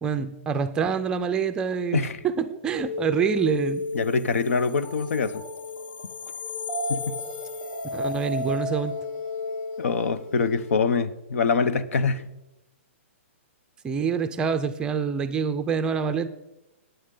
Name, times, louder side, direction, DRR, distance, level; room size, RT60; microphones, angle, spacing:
voice 1, 0.0-3.8 7.9-8.9 13.8-16.3, right 6 dB, 10° right, 9 dB, 0.4 m, -26 dB
sound 1, 2.8-10.7, left 3 dB, 50° left, 2.8 m, -33 dB
voice 2, 3.9-5.4 6.9-7.2 9.8-12.3, left 5 dB, 80° left, 15 dB, 0.9 m, -24 dB
15.0 x 9.3 x 3.8 m, 0.91 s
hypercardioid pair, 165°, 7 cm